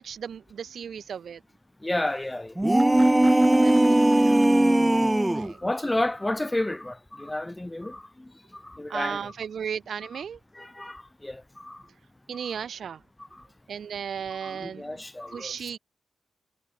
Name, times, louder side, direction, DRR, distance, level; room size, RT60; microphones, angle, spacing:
voice 1, 0.0-1.4 3.0-3.2 3.6-4.4 5.3-5.6 8.9-10.4 12.3-13.0 13.7-15.0 15.3-15.8, right 7 dB, 80° right, 5.4 m, -35 dB
voice 2, 1.8-2.5 5.6-8.0 8.5-9.3 10.5-11.8 13.3-13.4 14.4-15.7, left 1 dB, 15° left, 1.0 m, -31 dB
sound 1, 2.6-5.5, right 1 dB, 10° right, 1.5 m, -19 dB
wide cardioid pair, 100°, 0 cm